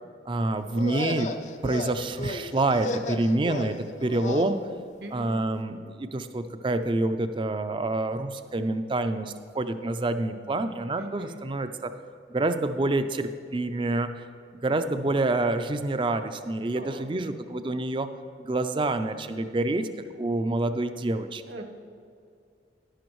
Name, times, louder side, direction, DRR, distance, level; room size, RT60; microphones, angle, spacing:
voice 1, 0.3-1.3 1.6-4.6 5.1-11.9 12.3-14.3 14.5-18.1 18.4-19.9 20.2-21.4, right 2 dB, 25° right, 9 dB, 0.4 m, -27 dB
sound 1, 0.7-4.5, left 2 dB, 40° left, 0.4 m, -34 dB
voice 2, 5.0-5.3 11.0-11.5 16.7-17.1 21.5-21.6, right 1 dB, 60° right, 5 dB, 0.9 m, -41 dB
11.5 x 11.5 x 3.1 m, 2.3 s
head